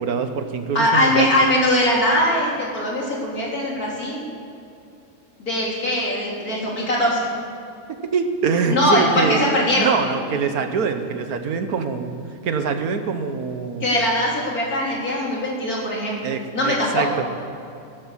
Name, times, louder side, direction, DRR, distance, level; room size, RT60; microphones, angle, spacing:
voice 1, 0.0-1.3 7.9-9.4 9.7-12.1 12.4-13.9 16.2-17.3, right 5 dB, 80° right, 7 dB, 1.5 m, -24 dB
voice 2, 0.8-4.2 5.4-7.3 8.7-9.9 13.8-16.2 16.5-17.0, left 1 dB, 75° left, -4 dB, 3.8 m, -21 dB
16.0 x 11.0 x 7.4 m, 2.6 s
omnidirectional pair, 1.6 m